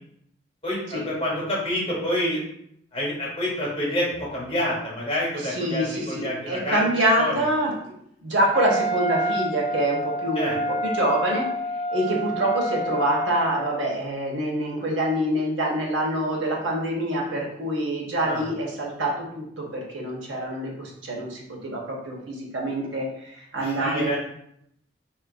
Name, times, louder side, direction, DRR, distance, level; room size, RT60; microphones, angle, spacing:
voice 1, 0.6-2.4 2.9-6.8 7.2-7.4 10.4-10.5 18.2-18.5 23.5-24.2, left 1 dB, 30° left, -4 dB, 0.9 m, -27 dB
voice 2, 5.3-7.9 8.2-24.2, right 1 dB, 80° right, -1 dB, 0.8 m, -26 dB
Wind instrument woodwind instrument, 8.5-13.8, equal, ahead, 0.5 m, -28 dB
3.6 x 2.4 x 2.3 m, 0.74 s
head